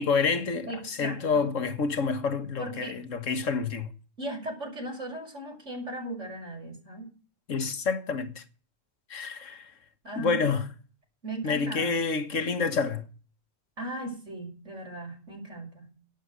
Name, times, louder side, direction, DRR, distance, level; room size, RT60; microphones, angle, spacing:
voice 1, 0.0-3.9 7.5-8.4 9.1-9.7 10.2-10.7 11.4-13.1, left 5 dB, 85° left, 1.8 m, -28 dB
voice 2, 0.7-1.5 2.6-3.0 4.2-7.1 10.0-10.5 11.2-12.0 13.8-15.9, right 2 dB, 75° right, 6.3 m, -37 dB
11.5 x 9.2 x 8.2 m
omnidirectional pair, 1.3 m